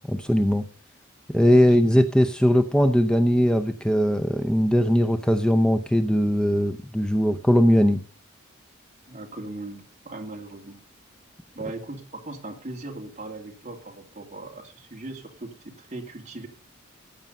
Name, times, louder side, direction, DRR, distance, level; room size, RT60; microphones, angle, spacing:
voice 1, 0.1-0.7 1.3-8.0, equal, 5° left, 8 dB, 0.6 m, -20 dB
voice 2, 9.1-10.8 11.5-16.5, right 2 dB, 35° right, 1 dB, 2.7 m, -38 dB
15.0 x 8.7 x 5.4 m, 0.38 s
head